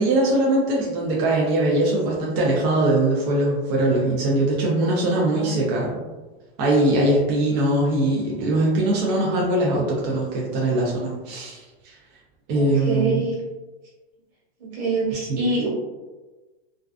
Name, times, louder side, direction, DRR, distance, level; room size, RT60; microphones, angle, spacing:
voice 1, 0.0-6.0 6.6-11.9 12.5-13.2 15.3-15.4, right 1 dB, 35° right, -4 dB, 0.4 m, -21 dB
voice 2, 12.5-13.4 14.6-15.7, right 3 dB, 70° right, -5 dB, 1.4 m, -25 dB
2.3 x 2.3 x 2.3 m, 1.2 s
supercardioid pair, 140°, 32 cm